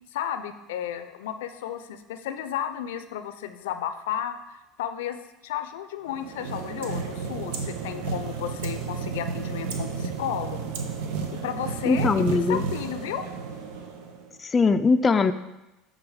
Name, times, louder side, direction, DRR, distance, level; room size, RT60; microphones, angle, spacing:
voice 1, 0.1-4.4 4.8-10.7 11.3-13.3, left 10 dB, 90° left, 10 dB, 0.5 m, -33 dB
sound 1, 6.1-14.3, right 5 dB, 80° right, 0.9 m, -32 dB
voice 2, 11.9-12.6 14.5-15.3, left 4 dB, 25° left, 8 dB, 0.4 m, -21 dB
7.9 x 3.8 x 4.9 m, 0.97 s
supercardioid pair, 105°, 0 cm